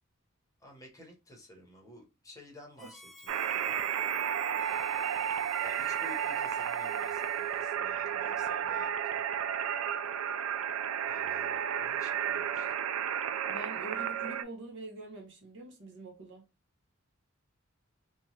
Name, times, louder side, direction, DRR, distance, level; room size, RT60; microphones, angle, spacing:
voice 1, 0.6-3.9 5.6-9.3 11.1-12.7, left 1 dB, 15° left, 1.0 m, -53 dB
Harmonica, 2.8-7.8, left 2 dB, ahead, 0.3 m, -55 dB
sound 1, 3.3-14.4, right 9 dB, 85° right, 0.3 m, -32 dB
voice 2, 13.5-16.5, right 2 dB, 60° right, 0.9 m, -45 dB
2.9 x 2.3 x 3.1 m
head